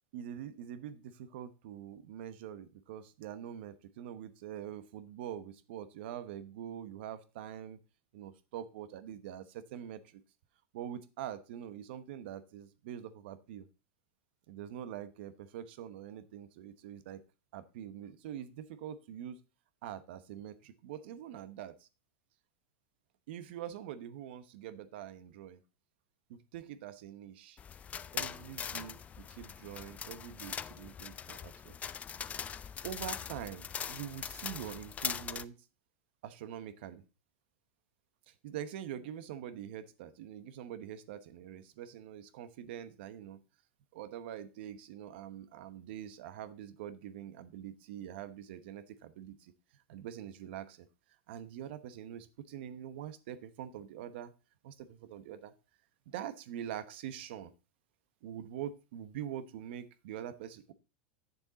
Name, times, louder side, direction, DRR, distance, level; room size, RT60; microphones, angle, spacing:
voice 1, 0.1-7.8 8.1-10.2 10.7-13.7 14.5-17.2 17.5-19.4 19.8-21.9 23.3-25.6 26.3-27.6 28.1-31.7 32.8-35.6 36.2-37.0 38.3-43.4 43.9-49.5 49.9-50.9 51.3-54.3 54.6-55.5 56.1-57.5 58.2-60.7, right 10 dB, 70° right, 12 dB, 1.0 m, -44 dB
sound 1, 27.6-35.4, left 8 dB, 25° left, 0.4 m, -41 dB
8.3 x 6.8 x 4.0 m, 0.31 s
hypercardioid pair, 115°, 6 cm